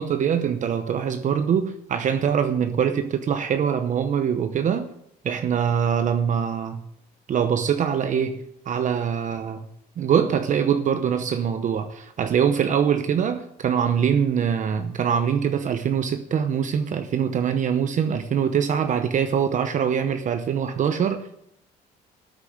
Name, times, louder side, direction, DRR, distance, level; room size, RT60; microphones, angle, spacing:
voice 1, 0.0-4.9 5.2-6.8 7.3-9.6 10.0-21.4, right 8 dB, 45° right, 0.8 m, -23 dB
13.0 x 6.8 x 8.0 m
cardioid pair, 110°, 17 cm